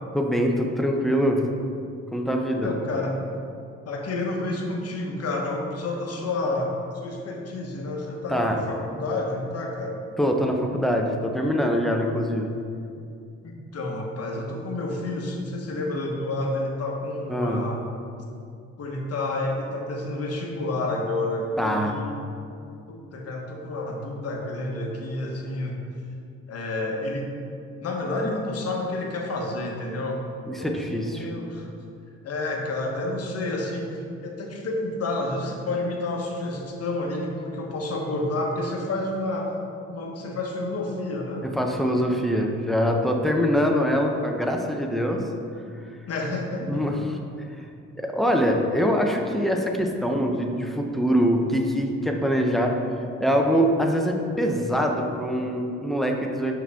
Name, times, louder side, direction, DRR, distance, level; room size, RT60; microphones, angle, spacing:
voice 1, 0.1-1.5 1.8-1.9 2.1-2.7 8.3-8.6 10.2-12.5 17.3-17.7 21.6-22.0 30.5-31.3 41.4-45.2 46.6-47.2 47.5-47.6 48.0-52.8 53.2-56.5, equal, ahead, 2 dB, 0.6 m, -24 dB
voice 2, 2.6-3.2 3.8-10.0 13.4-17.8 18.8-22.2 22.9-25.7 26.5-27.3 27.8-30.2 30.6-31.7 32.2-39.5 39.9-41.4 46.1-46.8, left 2 dB, 55° left, 0 dB, 1.1 m, -29 dB
5.9 x 4.9 x 3.4 m, 2.5 s
cardioid pair, 90°, 30 cm